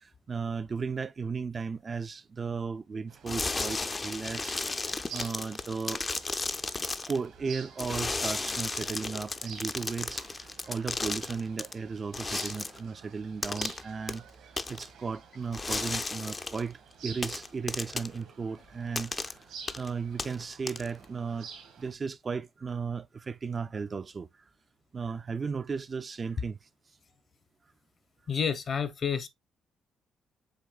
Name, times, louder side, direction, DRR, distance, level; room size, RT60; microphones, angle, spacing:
voice 1, 0.0-4.6 5.1-6.0 7.1-10.2 10.7-14.2 14.7-19.3 19.7-21.5 21.8-24.3 24.9-26.6, right 5 dB, 35° right, 0.4 m, -35 dB
sound 1, 3.1-21.9, right 6 dB, 85° right, 2.0 m, -50 dB
sound 2, 3.3-7.2 7.8-11.7 12.1-12.8 13.4-13.8 14.1-14.2 14.6-14.9 15.5-16.6 17.2-18.2 18.9-19.3 19.7-19.9 20.2-21.0, left 3 dB, 25° left, 0.4 m, -34 dB
voice 2, 28.3-29.3, left 7 dB, 50° left, 0.8 m, -30 dB
7.8 x 3.0 x 2.3 m
cardioid pair, 90°, 0 cm